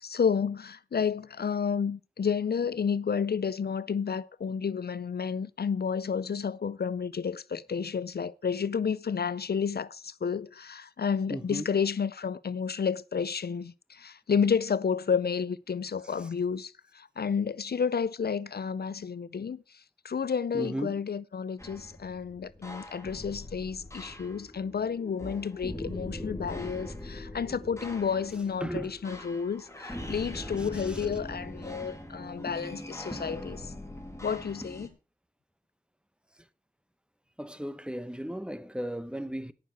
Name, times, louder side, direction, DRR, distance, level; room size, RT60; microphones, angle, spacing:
voice 1, 0.0-19.6 20.0-33.7 34.2-34.9, left 6 dB, 70° left, 0.5 m, -31 dB
voice 2, 11.3-11.7 16.1-16.2 20.5-21.0 26.8-26.9 28.6-29.2 30.6-31.1 37.4-39.5, equal, 5° right, 0.9 m, -36 dB
sound 1, 21.6-34.9, left 1 dB, 15° left, 2.6 m, -41 dB
17.0 x 6.6 x 4.6 m
wide cardioid pair, 55°, 17 cm